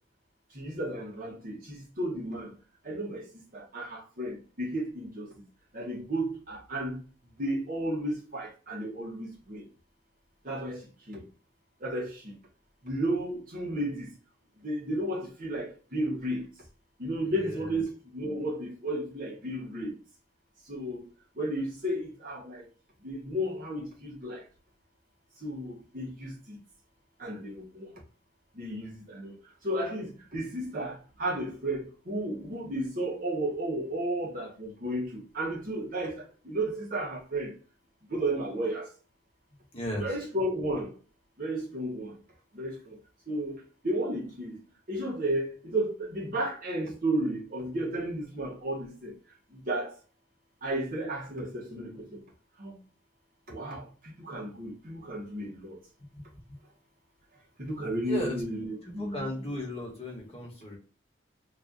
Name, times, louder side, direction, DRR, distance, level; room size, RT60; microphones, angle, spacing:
voice 1, 0.5-2.5 2.8-3.2 3.5-5.3 5.7-6.9 7.4-9.6 10.4-10.8 11.1-11.2 11.8-12.3 12.8-14.1 14.6-16.5 17.0-20.0 20.7-21.0 21.4-22.6 23.0-24.4 25.4-26.6 27.2-27.9 28.6-29.3 29.6-37.5 38.1-38.9 40.0-40.9 41.4-42.1 42.5-43.0 43.3-44.6 44.9-49.1 49.7-49.9 50.6-52.2 52.6-52.7 53.5-53.9 54.2-55.8 57.6-59.5, right 1 dB, 45° right, 1.2 m, -33 dB
voice 2, 17.2-17.8 39.7-40.1 56.1-56.2 58.0-58.4 58.8-60.8, equal, 30° left, 1.2 m, -36 dB
3.2 x 2.4 x 3.9 m
head